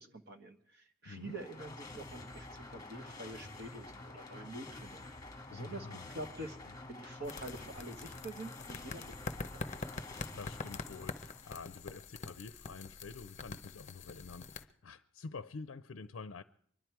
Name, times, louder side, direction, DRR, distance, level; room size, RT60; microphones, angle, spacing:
voice 1, 0.0-5.0 5.5-9.1 9.5-9.6, right 2 dB, 55° right, 1.5 m, -46 dB
voice 2, 1.0-1.4 5.5-6.1 6.7-6.8 10.3-16.4, left 4 dB, 75° left, 0.5 m, -48 dB
sound 1, 1.1-11.9, left 2 dB, 20° left, 1.3 m, -49 dB
sound 2, 7.2-14.6, left 4 dB, 35° left, 0.7 m, -45 dB
24.5 x 11.0 x 4.6 m
head